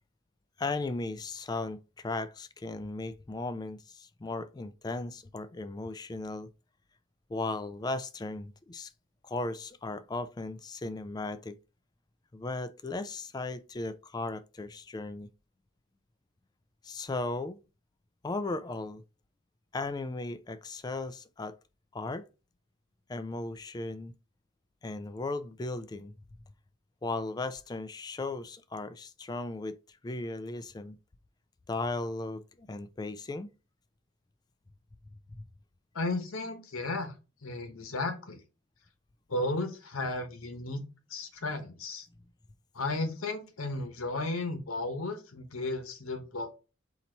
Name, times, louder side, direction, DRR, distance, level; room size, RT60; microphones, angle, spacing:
voice 1, 0.6-6.5 7.3-8.9 9.2-11.6 12.3-15.3 16.8-17.6 18.2-19.0 19.7-21.6 21.9-22.2 23.1-24.1 24.8-26.1 27.0-29.8 30.0-31.0 31.7-33.5 35.4-35.5, left 2 dB, 20° left, 0.3 m, -36 dB
voice 2, 35.9-37.1 37.4-38.4 39.3-40.8 41.1-42.1 42.7-46.5, left 2 dB, 90° left, 1.0 m, -34 dB
4.0 x 2.9 x 4.4 m
head